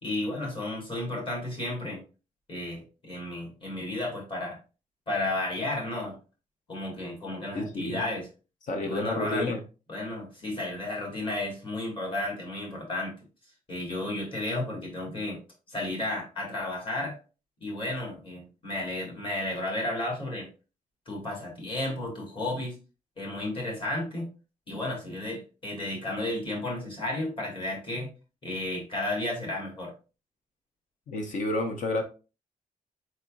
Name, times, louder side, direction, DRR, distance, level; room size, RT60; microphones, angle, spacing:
voice 1, 0.0-2.0 2.5-4.6 5.1-6.2 6.7-8.3 8.8-9.5 9.9-13.1 13.7-15.4 15.7-17.2 17.6-20.5 21.1-22.8 23.2-24.3 24.7-28.1 28.4-29.9, left 1 dB, 35° left, 2.1 m, -33 dB
voice 2, 7.5-8.0 8.7-9.6 31.1-32.0, left 2 dB, 60° left, 0.8 m, -30 dB
4.7 x 4.3 x 2.5 m
wide cardioid pair, 165°, 15 cm